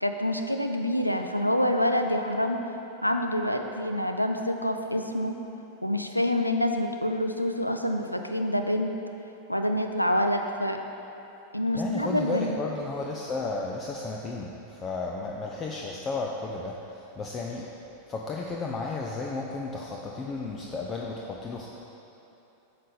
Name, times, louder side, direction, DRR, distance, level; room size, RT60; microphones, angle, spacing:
voice 1, 0.0-2.6 3.0-5.4 5.8-8.9 9.5-10.8 11.5-12.5, left 1 dB, 90° left, 5 dB, 0.4 m, -27 dB
voice 2, 11.7-17.7 18.1-21.7, left 3 dB, 25° left, -1 dB, 0.5 m, -33 dB
9.1 x 5.2 x 4.1 m, 3.0 s
figure-of-eight pair, 90°, 0 cm